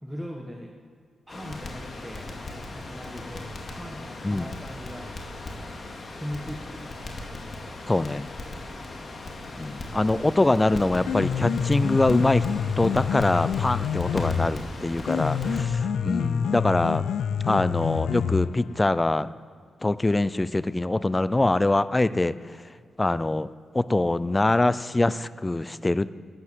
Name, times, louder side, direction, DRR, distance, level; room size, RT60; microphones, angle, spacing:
voice 1, 0.0-0.7 1.3-2.3 2.7-5.1 6.1-7.0 15.1-15.7, equal, 5° right, -1 dB, 1.3 m, -39 dB
Crackle, 1.3-15.6, left 2 dB, 45° left, 2.2 m, -38 dB
voice 2, 7.9-8.2 9.6-12.5 12.8-15.7 16.0-17.0 17.5-19.3 19.8-22.4 23.0-23.5 23.7-26.1, left 2 dB, 15° left, 16 dB, 0.5 m, -23 dB
Piano, 10.9-18.9, left 7 dB, 85° left, 0.5 m, -27 dB
12.5 x 10.0 x 7.5 m, 2.1 s
cardioid pair, 110°, 0 cm